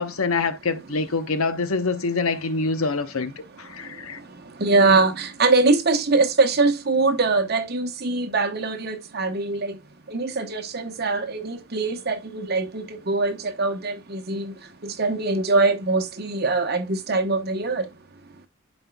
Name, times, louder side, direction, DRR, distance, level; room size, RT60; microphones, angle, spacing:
voice 1, 0.0-4.2, left 4 dB, 80° left, 0.8 m, -25 dB
voice 2, 4.6-9.7 10.1-14.5 14.8-17.9, right 3 dB, 45° right, 0.9 m, -22 dB
11.5 x 4.3 x 2.2 m
head